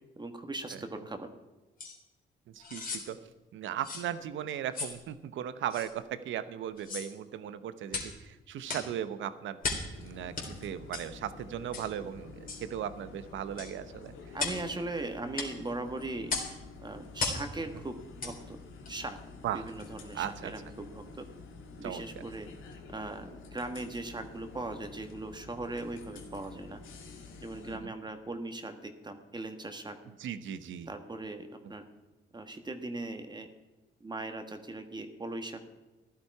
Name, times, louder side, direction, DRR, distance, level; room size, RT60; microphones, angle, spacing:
voice 1, 0.2-1.3 14.3-16.3 16.8-18.6 18.9-19.2 19.5-21.2 21.8-22.5 22.9-26.8 27.4-29.9 30.9-31.8 32.3-33.5 34.0-35.7, right 2 dB, 20° right, 7 dB, 1.5 m, -39 dB
sound 1, 1.8-2.0 2.6-3.1 3.8-4.1 4.7-5.0 5.7-5.9 6.8-7.1 7.9-8.1 8.7-8.9 9.6-9.9 10.4-10.5 10.9-11.1 11.7-11.9 12.5-12.7 13.6-13.7 14.4-14.6 15.4-15.5 16.3-16.5 17.2-17.5 18.2-18.4 18.8-18.9, left 4 dB, 45° left, 3.5 m, -35 dB
voice 2, 2.5-3.2 3.5-9.6 10.0-14.1 19.4-19.6 20.1-20.5 21.8-22.0 27.7-27.9 30.2-30.9, right 10 dB, 75° right, 13 dB, 0.9 m, -37 dB
sound 2, 9.9-27.8, left 4 dB, 90° left, 2.2 m, -49 dB
15.0 x 12.0 x 4.8 m, 1.1 s
cardioid pair, 90°, 20 cm